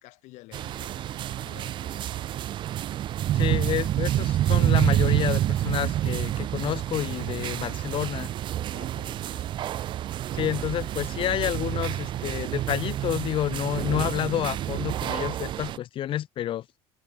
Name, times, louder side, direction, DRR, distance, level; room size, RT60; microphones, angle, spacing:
voice 1, 0.0-2.4 8.7-9.6, left 21 dB, 70° left, 5.7 m, -51 dB
sound 1, 0.5-15.8, right 12 dB, 40° right, 0.4 m, -28 dB
voice 2, 3.3-8.3 10.3-16.6, left 12 dB, 45° left, 1.4 m, -29 dB
cardioid pair, 145°, 13 cm